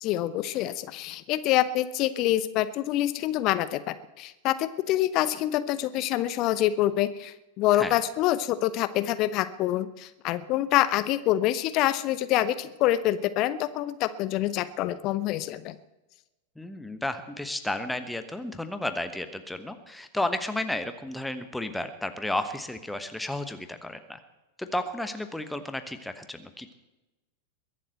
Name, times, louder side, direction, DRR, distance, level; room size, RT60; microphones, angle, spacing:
voice 1, 0.0-15.8, left 13 dB, 40° left, 14 dB, 0.7 m, -26 dB
voice 2, 16.6-24.2 24.6-26.7, left 1 dB, 5° left, 9 dB, 1.2 m, -33 dB
22.0 x 7.7 x 7.8 m, 1.0 s
figure-of-eight pair, 90°, 0 cm